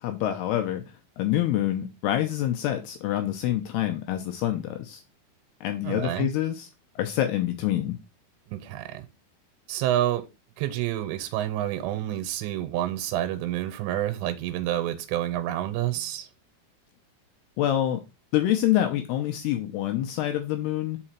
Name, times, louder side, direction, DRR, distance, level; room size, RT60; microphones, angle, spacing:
voice 1, 0.0-0.8 1.2-5.0 5.6-6.7 7.0-8.0 17.6-18.0 18.3-21.0, left 12 dB, 80° left, 2.6 m, -26 dB
voice 2, 5.8-6.3 8.5-9.1 9.7-10.3 10.6-16.3, right 12 dB, 90° right, 2.9 m, -28 dB
5.4 x 4.9 x 4.4 m
omnidirectional pair, 4.9 m